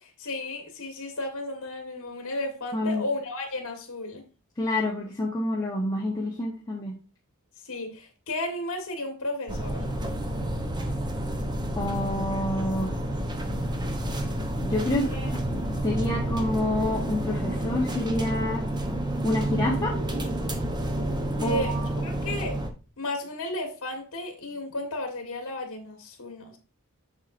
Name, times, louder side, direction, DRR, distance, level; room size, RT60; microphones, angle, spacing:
voice 1, 0.0-4.2 7.6-9.8 14.9-15.0 21.4-22.6 23.0-26.6, left 1 dB, 80° left, 3 dB, 1.5 m, -33 dB
voice 2, 2.7-3.0 4.6-6.9 11.8-12.9 14.6-18.6 19.2-19.9 21.4-21.9, left 1 dB, 15° left, -3 dB, 1.2 m, -28 dB
sound 1, 9.5-22.7, right 1 dB, 20° right, 0.8 m, -29 dB
7.4 x 6.5 x 2.6 m, 0.34 s
head